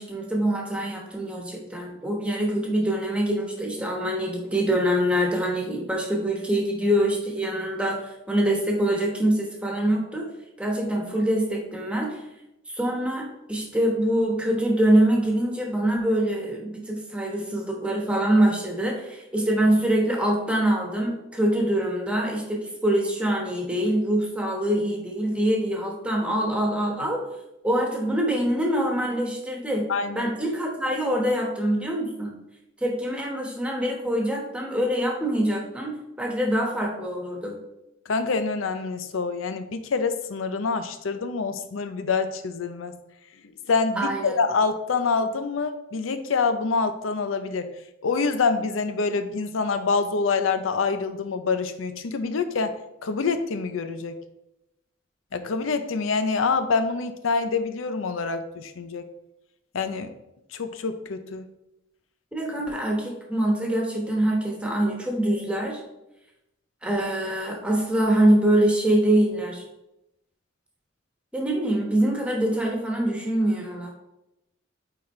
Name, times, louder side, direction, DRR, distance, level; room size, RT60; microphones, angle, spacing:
voice 1, 0.0-10.2 10.6-12.2 12.7-27.2 27.6-29.9 30.1-32.3 32.8-37.6 44.0-44.4 62.3-65.8 66.8-69.6 71.3-73.9, right 1 dB, 5° right, -1 dB, 1.3 m, -24 dB
voice 2, 29.9-30.3 38.1-43.0 43.7-47.7 48.0-54.2 55.3-59.1 59.7-60.1 60.5-61.4, left 4 dB, 85° left, 9 dB, 0.5 m, -26 dB
8.9 x 4.1 x 3.2 m, 0.90 s
head